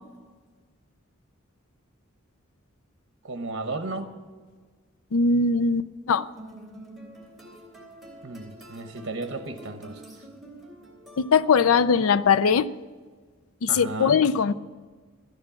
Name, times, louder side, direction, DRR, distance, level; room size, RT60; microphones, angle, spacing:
voice 1, 3.2-4.1 8.2-10.0 13.7-14.2, right 3 dB, 60° right, 8 dB, 1.0 m, -34 dB
voice 2, 5.1-6.3 11.2-12.7 13.6-14.5, left 5 dB, 85° left, 15 dB, 0.5 m, -21 dB
sound 1, 6.4-11.8, right 1 dB, ahead, 3.2 m, -47 dB
13.5 x 9.6 x 7.2 m, 1.5 s
head